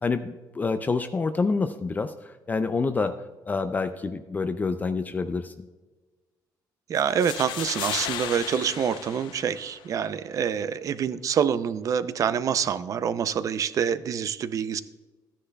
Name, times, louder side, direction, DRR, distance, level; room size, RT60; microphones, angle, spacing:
voice 1, 0.0-3.2 3.5-5.5, left 4 dB, 20° left, 9 dB, 0.4 m, -27 dB
voice 2, 6.9-14.8, right 8 dB, 45° right, 14 dB, 0.5 m, -26 dB
sound 1, 7.0-10.0, left 10 dB, 80° left, 0.6 m, -35 dB
14.0 x 9.9 x 2.2 m, 1.2 s
cardioid pair, 135°, 8 cm